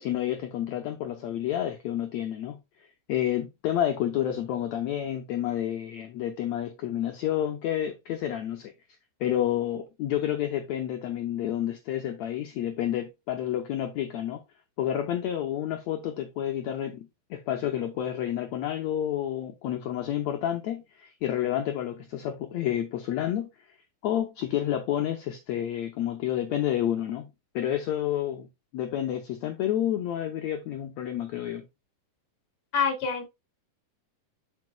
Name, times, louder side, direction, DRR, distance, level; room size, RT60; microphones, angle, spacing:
voice 1, 0.0-8.7 9.2-14.4 14.8-23.5 24.0-27.3 27.5-28.5 28.7-31.7, left 11 dB, 75° left, 1.7 m, -30 dB
voice 2, 32.7-33.3, left 6 dB, 40° left, 3.7 m, -26 dB
10.5 x 5.1 x 2.3 m
omnidirectional pair, 4.0 m